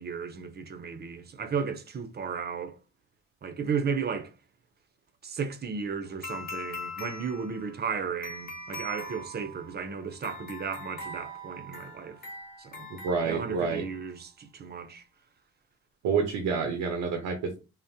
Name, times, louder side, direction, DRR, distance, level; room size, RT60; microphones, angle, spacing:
voice 1, 0.0-2.8 3.4-4.3 5.2-12.2 12.6-12.9 13.2-15.0, right 6 dB, 35° right, 0.5 m, -34 dB
sound 1, 6.2-13.9, left 1 dB, 30° left, 1.0 m, -42 dB
voice 2, 12.9-13.8 16.0-17.6, right 5 dB, 90° right, 0.7 m, -28 dB
3.5 x 2.0 x 2.7 m
cardioid pair, 90°, 30 cm